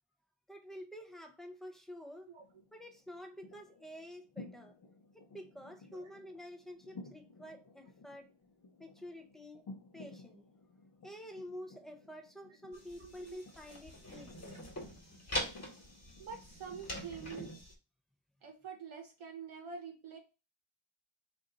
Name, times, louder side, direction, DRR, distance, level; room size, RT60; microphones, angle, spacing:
voice 1, 0.5-2.3 2.7-4.8 5.1-8.3 8.8-9.7 9.9-10.4 11.0-14.6, equal, ahead, 0.5 m, -49 dB
sound 1, 2.4-17.6, left 3 dB, 50° left, 0.7 m, -56 dB
sound 2, 12.7-17.7, left 1 dB, 30° left, 1.5 m, -43 dB
voice 2, 12.7-13.4 16.2-17.7 18.4-20.2, right 6 dB, 70° right, 0.9 m, -47 dB
4.0 x 2.6 x 3.7 m
wide cardioid pair, 175°, 49 cm